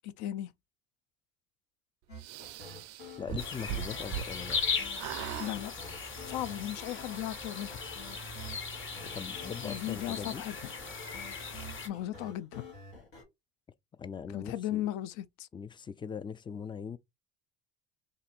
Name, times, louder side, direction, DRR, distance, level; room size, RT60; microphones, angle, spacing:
voice 1, 0.0-0.5 5.4-5.7 6.2-7.8 9.6-10.6 11.8-12.6 14.3-15.5, left 13 dB, 65° left, 0.5 m, -36 dB
sound 1, 2.1-13.2, left 1 dB, 90° left, 1.6 m, -49 dB
sound 2, 2.2-4.7 4.9-5.6, right 13 dB, 55° right, 0.4 m, -39 dB
voice 2, 3.2-4.6 9.1-10.4 14.0-14.9 15.5-17.0, left 7 dB, 15° left, 0.3 m, -40 dB
sound 3, 3.4-11.9, left 5 dB, 40° left, 1.3 m, -38 dB
2.6 x 2.6 x 4.1 m
hypercardioid pair, 70°, 31 cm